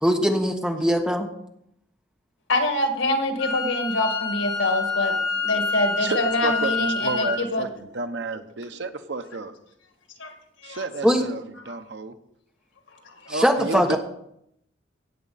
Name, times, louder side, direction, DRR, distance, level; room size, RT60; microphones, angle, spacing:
voice 1, 0.0-1.3 11.0-11.2 13.3-14.0, equal, 5° right, 3 dB, 1.2 m, -21 dB
voice 2, 2.5-7.7 10.2-10.3 10.6-10.9 11.7-11.8 13.0-13.3, left 1 dB, 85° left, 4 dB, 1.9 m, -25 dB
Wind instrument woodwind instrument, 3.4-7.4, left 4 dB, 55° left, 2.2 m, -27 dB
voice 3, 6.0-9.5 10.6-12.1 13.3-14.0, right 3 dB, 65° right, 9 dB, 0.9 m, -31 dB
17.0 x 7.7 x 4.1 m, 0.76 s
head